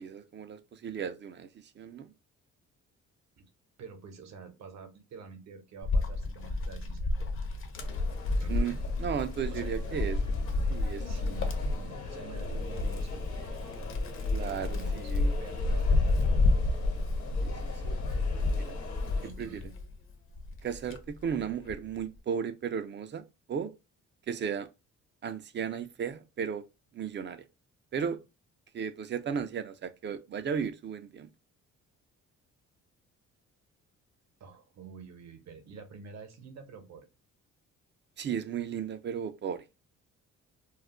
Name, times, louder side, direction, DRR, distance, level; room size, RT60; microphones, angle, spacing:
voice 1, 0.0-2.1 8.5-10.2 10.7-11.1 14.3-15.3 17.4-17.6 18.6-18.8 19.4-19.6 20.6-23.7 24.3-24.7 25.2-26.6 26.9-27.4 27.9-28.2 28.7-31.3 38.2-39.6, right 7 dB, 40° right, 0.4 m, -35 dB
voice 2, 3.8-7.1 8.4-8.8 9.5-10.0 11.0-13.2 14.4-16.6 19.2-19.7 34.4-37.1, right 5 dB, 65° right, 0.8 m, -48 dB
Wind, 5.8-19.9 20.4-21.9, left 2 dB, 45° left, 0.6 m, -30 dB
sound 1, 7.7-19.3, left 4 dB, 70° left, 1.0 m, -44 dB
2.4 x 2.0 x 3.5 m
cardioid pair, 90°, 30 cm